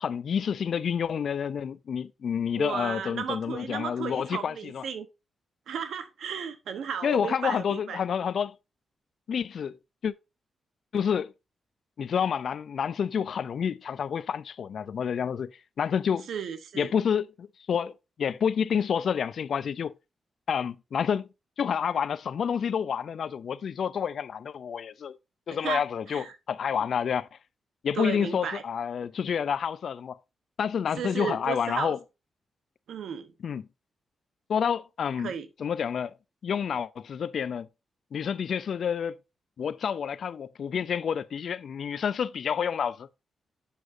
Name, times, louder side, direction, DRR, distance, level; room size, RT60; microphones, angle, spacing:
voice 1, 0.0-4.8 7.0-8.6 9.3-9.8 10.0-10.1 10.9-11.3 12.0-16.3 16.8-17.9 18.2-19.9 20.5-21.3 21.6-25.2 25.5-27.3 27.8-30.2 30.6-32.0 33.4-33.7 34.5-35.3 35.6-36.2 36.4-37.7 38.1-39.1 39.6-43.1, left 7 dB, 70° left, 0.4 m, -29 dB
voice 2, 2.6-5.1 5.7-8.0 16.3-16.9 25.6-25.8 26.1-26.4 27.9-28.6 31.0-31.9 32.9-33.3 35.2-35.5, right 7 dB, 80° right, 1.0 m, -34 dB
8.2 x 6.1 x 2.6 m
cardioid pair, 70°, 0 cm